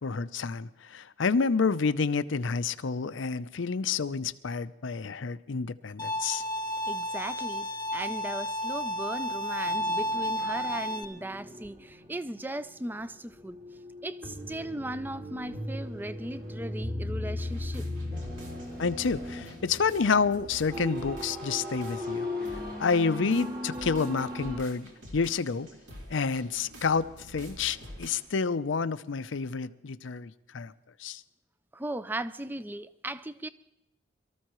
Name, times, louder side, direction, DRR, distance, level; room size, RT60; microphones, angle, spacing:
voice 1, 0.0-6.4 18.8-22.3 22.8-25.7 26.1-30.7 31.0-31.2, left 5 dB, 85° left, 0.6 m, -29 dB
Bowed string instrument, 6.0-11.0, left 1 dB, 20° left, 0.9 m, -32 dB
voice 2, 6.9-13.6 14.0-17.9 31.7-33.5, right 1 dB, 10° right, 0.4 m, -37 dB
sound 1, 9.7-13.1 13.3-24.6, left 1 dB, 50° right, 2.1 m, -38 dB
sound 2, 17.4-28.2, right 1 dB, 85° right, 3.3 m, -48 dB
23.5 x 14.0 x 3.1 m
head